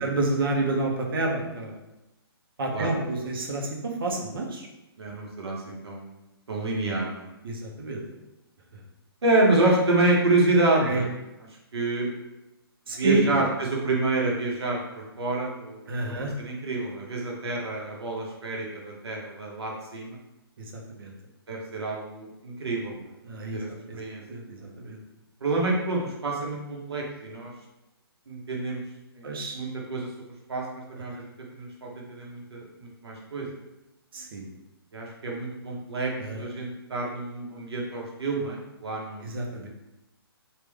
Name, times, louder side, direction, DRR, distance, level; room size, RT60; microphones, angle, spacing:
voice 1, 0.0-1.8 2.6-4.7 7.4-8.0 10.8-11.0 12.9-13.4 15.9-16.3 20.6-21.1 23.2-23.6 23.9-24.0 24.3-25.0 29.2-29.6 31.1-31.2 34.1-34.5 36.2-36.4 39.2-39.7, right 2 dB, 60° right, 1 dB, 0.9 m, -29 dB
voice 2, 5.0-6.2 6.5-7.3 9.2-11.1 11.7-12.1 13.0-20.2 21.5-23.1 23.5-23.7 23.9-24.2 25.4-27.5 28.3-28.8 29.1-30.1 30.5-31.2 31.5-33.5 34.9-36.1 36.4-39.3, right 2 dB, 85° right, -2 dB, 1.1 m, -28 dB
3.6 x 2.5 x 3.4 m, 0.94 s
hypercardioid pair, 155°, 13 cm